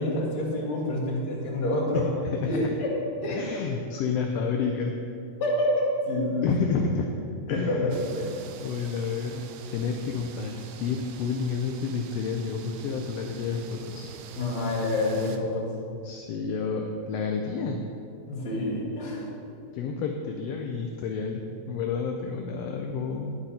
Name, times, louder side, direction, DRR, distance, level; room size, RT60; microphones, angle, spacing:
voice 1, 0.0-2.1 2.5-2.9 3.2-3.4 5.4-6.5 7.5-8.4 14.3-15.7 18.3-19.2, left 1 dB, 65° left, -7 dB, 3.5 m, -27 dB
voice 2, 1.9-2.5 3.3-4.9 6.4-7.1 7.5-8.0 8.6-14.1 16.0-17.8 19.7-23.3, left 5 dB, 80° left, 3 dB, 1.4 m, -30 dB
sound 1, 7.9-15.4, right 7 dB, 80° right, 1.6 m, -46 dB
10.5 x 7.8 x 4.2 m, 2.5 s
omnidirectional pair, 3.4 m